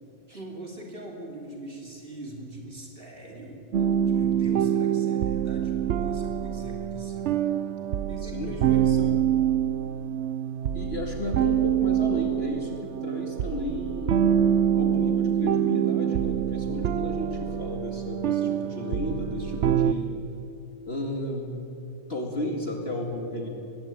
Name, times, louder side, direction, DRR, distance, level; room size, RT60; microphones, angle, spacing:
voice 1, 0.3-3.7 4.1-7.4 8.1-9.3, right 2 dB, 30° right, -1 dB, 3.3 m, -41 dB
sound 1, 3.7-19.9, right 9 dB, 75° right, 0.6 m, -25 dB
voice 2, 10.7-14.4 14.7-20.1 20.8-21.5 22.1-23.5, left 1 dB, 35° left, 1 dB, 2.2 m, -33 dB
20.5 x 15.5 x 9.0 m, 2.8 s
omnidirectional pair, 1.9 m